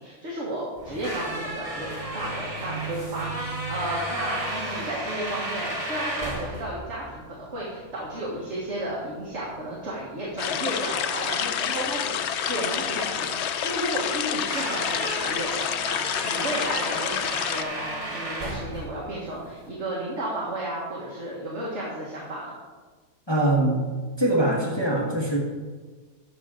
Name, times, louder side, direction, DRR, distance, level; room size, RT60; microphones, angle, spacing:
voice 1, 0.0-22.6, right 1 dB, 50° right, -5 dB, 1.8 m, -33 dB
sound 1, 0.8-19.7, right 1 dB, 25° right, 1.8 m, -34 dB
sound 2, 10.4-17.6, left 9 dB, 65° left, 0.7 m, -28 dB
voice 2, 23.3-23.9 24.2-25.4, right 1 dB, 20° left, -3 dB, 1.4 m, -23 dB
12.0 x 6.4 x 3.8 m, 1.4 s
omnidirectional pair, 1.5 m